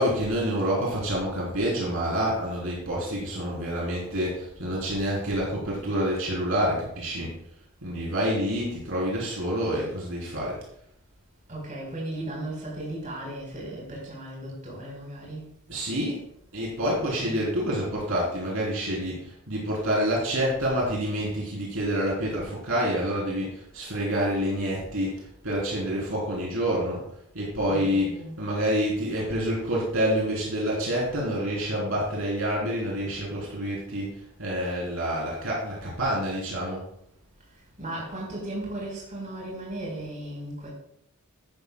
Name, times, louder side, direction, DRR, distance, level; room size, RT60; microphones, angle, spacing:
voice 1, 0.0-7.3 7.8-10.6 15.7-16.2 16.5-27.0 27.3-28.1 28.4-34.1 34.4-36.8, equal, 65° right, -4 dB, 3.8 m, -27 dB
voice 2, 11.5-15.5 16.9-17.5 27.7-28.4 37.8-40.7, right 1 dB, 35° right, -3 dB, 4.6 m, -36 dB
13.0 x 10.5 x 2.3 m, 0.72 s
head